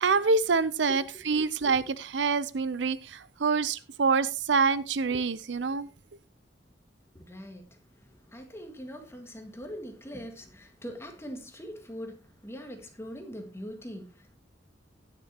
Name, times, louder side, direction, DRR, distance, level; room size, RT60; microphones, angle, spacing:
voice 1, 0.0-5.9, right 4 dB, 70° right, 0.6 m, -26 dB
voice 2, 7.2-7.7 8.3-14.4, equal, 15° left, 1.9 m, -42 dB
19.0 x 6.9 x 2.9 m
head